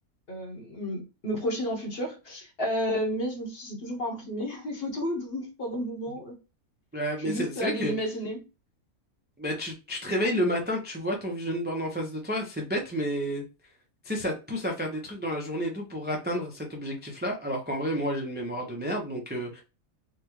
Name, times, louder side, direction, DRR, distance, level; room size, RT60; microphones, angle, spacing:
voice 1, 0.3-6.4 7.2-8.4, equal, 45° left, 1.2 m, -32 dB
voice 2, 6.9-7.9 9.4-13.4 14.0-19.6, equal, 15° right, 0.3 m, -30 dB
4.0 x 2.2 x 3.0 m
omnidirectional pair, 1.5 m